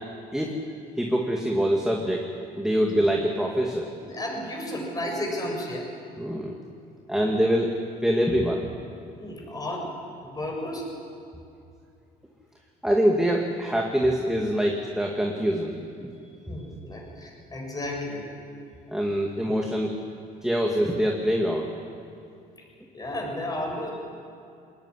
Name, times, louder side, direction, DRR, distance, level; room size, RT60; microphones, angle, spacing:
voice 1, 1.0-2.3 2.6-3.9 6.2-6.5 7.1-7.7 8.0-8.6 12.8-16.1 18.9-19.9 20.4-21.7, equal, 5° right, 0 dB, 2.2 m, -24 dB
voice 2, 4.0-5.9 9.2-9.9 10.2-10.9 16.5-18.3 22.9-23.9, left 1 dB, 20° left, 0 dB, 7.2 m, -33 dB
21.5 x 19.0 x 9.9 m, 2.5 s
cardioid pair, 110°, 17 cm